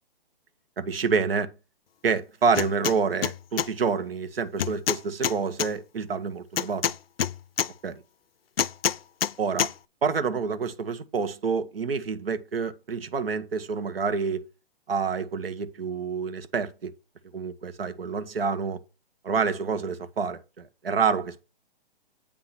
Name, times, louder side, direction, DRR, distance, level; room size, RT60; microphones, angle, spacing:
voice 1, 0.8-1.5 2.0-6.8 7.8-8.0 9.4-9.7 10.0-14.4 14.9-16.9 17.3-18.8 19.2-21.4, right 5 dB, 80° right, 1.3 m, -28 dB
sound 1, 2.5-3.0 3.2-3.7 4.6-5.7 6.6-7.7 8.6-9.3 9.6-9.7, left 9 dB, 80° left, 0.6 m, -26 dB
8.7 x 3.7 x 5.8 m
hypercardioid pair, 150°, 29 cm